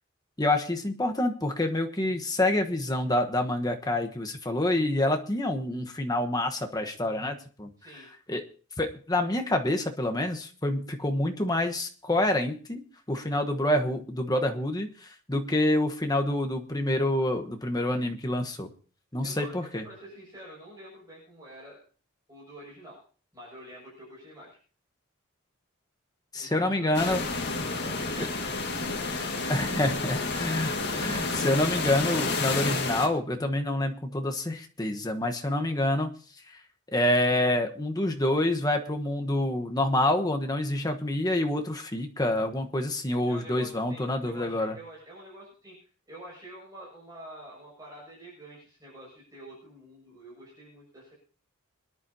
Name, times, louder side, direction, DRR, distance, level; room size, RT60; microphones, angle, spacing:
voice 1, 0.4-7.7 8.3-8.4 8.8-12.8 13.1-18.7 19.1-19.8 26.3-27.2 28.2-28.3 29.5-36.1 36.9-44.7, left 1 dB, 20° left, 4 dB, 1.2 m, -27 dB
voice 2, 7.8-8.1 19.2-21.8 22.3-23.0 23.3-24.6 26.4-26.9 27.5-28.6 29.6-30.2 43.3-51.1, right 1 dB, 15° right, -6 dB, 6.5 m, -47 dB
sound 1, 26.9-33.1, left 3 dB, 50° left, 1.9 m, -30 dB
25.5 x 10.5 x 2.8 m, 0.41 s
head